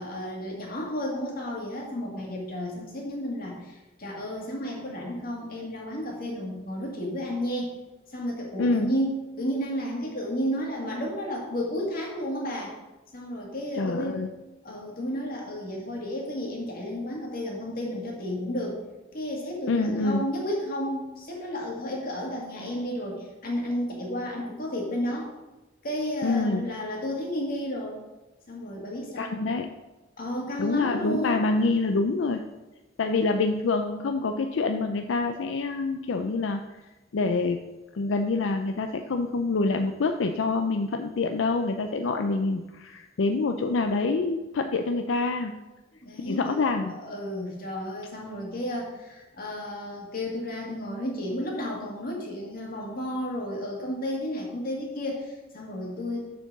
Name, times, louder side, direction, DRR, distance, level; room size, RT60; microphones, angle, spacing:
voice 1, 0.0-7.8 8.1-12.7 13.1-14.3 14.6-18.8 19.1-25.3 25.8-28.0 28.5-29.5 30.2-31.4 46.0-56.3, equal, 50° left, -2 dB, 2.1 m, -32 dB
voice 2, 8.6-8.9 13.7-14.3 19.7-20.2 26.2-26.7 29.2-29.7 30.6-32.4 33.0-36.6 37.1-37.6 37.9-45.5 46.3-46.9, left 3 dB, 85° left, 6 dB, 0.5 m, -26 dB
6.8 x 4.5 x 6.0 m, 1.1 s
head